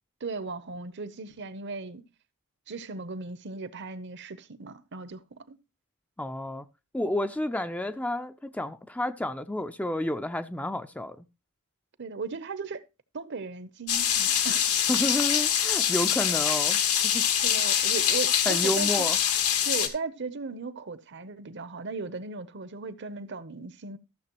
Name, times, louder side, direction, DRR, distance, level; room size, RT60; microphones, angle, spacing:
voice 1, 0.2-2.0 2.7-5.6 12.0-12.8 13.1-14.7 17.4-18.9 19.7-24.0, right 4 dB, 50° right, 0.8 m, -37 dB
voice 2, 6.2-6.7 6.9-11.2 14.9-16.8 17.0-17.2 18.5-19.2, left 1 dB, 5° left, 0.4 m, -30 dB
sound 1, 13.9-19.9, left 9 dB, 80° left, 1.5 m, -24 dB
14.5 x 6.8 x 3.0 m
head